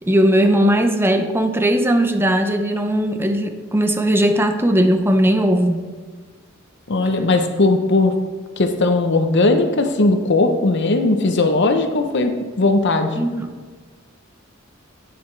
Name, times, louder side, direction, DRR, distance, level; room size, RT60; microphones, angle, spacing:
voice 1, 0.0-5.8 13.2-13.6, equal, 10° right, 6 dB, 0.6 m, -18 dB
voice 2, 6.9-8.1 8.6-13.2, left 2 dB, 60° left, 6 dB, 0.8 m, -18 dB
10.5 x 8.5 x 3.2 m, 1.5 s
head